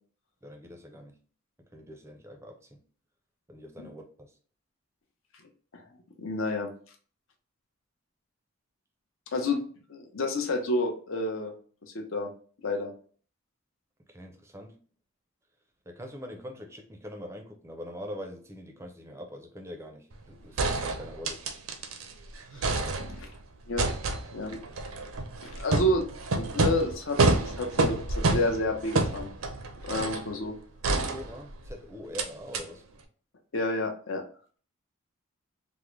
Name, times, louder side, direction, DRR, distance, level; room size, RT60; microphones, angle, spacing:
voice 1, 0.4-1.1 1.6-2.8 3.5-4.3 14.1-14.8 15.9-21.4 31.0-32.8, equal, 10° right, 0.4 m, -43 dB
voice 2, 6.2-6.7 9.3-9.6 9.9-11.5 11.9-12.3 12.6-12.9 22.5-23.3 23.7-23.9 24.3-24.6 25.4-26.0 26.4-29.3 29.8-30.5 33.5-34.2, left 1 dB, 70° left, 0.7 m, -30 dB
sound 1, 20.1-20.2 20.6-22.1 22.4-23.4 23.8-30.3 30.8-31.7 32.1-32.3 32.5-32.6, right 3 dB, 75° right, 0.5 m, -28 dB
3.5 x 2.1 x 3.1 m
head